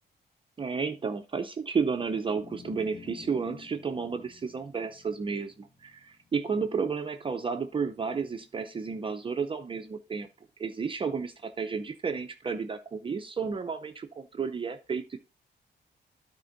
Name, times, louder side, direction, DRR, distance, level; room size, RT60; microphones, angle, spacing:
voice 1, 0.6-10.3 10.6-15.2, right 5 dB, 30° right, 6 dB, 0.6 m, -32 dB
sound 1, 2.0-8.4, left 4 dB, 45° left, 1.7 m, -51 dB
12.0 x 4.3 x 3.9 m, 0.29 s
wide cardioid pair, 160°, 19 cm